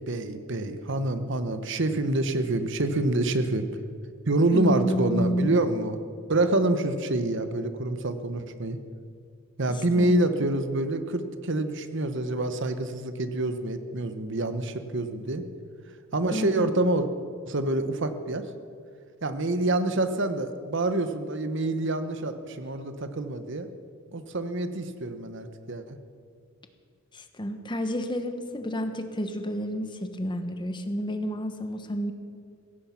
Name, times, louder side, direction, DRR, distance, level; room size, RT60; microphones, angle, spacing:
voice 1, 0.1-3.7 4.3-6.0 6.3-8.8 9.6-15.5 16.1-17.1 17.4-18.4 19.2-23.7 24.1-26.0, right 2 dB, 65° right, 10 dB, 1.1 m, -27 dB
voice 2, 4.5-5.6 9.7-10.1 16.3-16.7 27.1-32.1, equal, 25° left, 7 dB, 1.2 m, -30 dB
16.5 x 15.0 x 5.8 m, 2.3 s
head